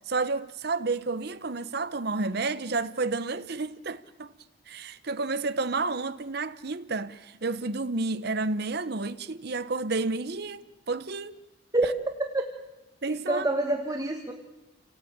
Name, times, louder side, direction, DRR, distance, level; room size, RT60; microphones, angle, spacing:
voice 1, 0.1-4.3 4.7-11.4 13.0-13.5, right 3 dB, 55° right, 0.9 m, -30 dB
voice 2, 13.1-14.3, right 2 dB, 20° right, 1.4 m, -27 dB
28.0 x 18.0 x 8.8 m
head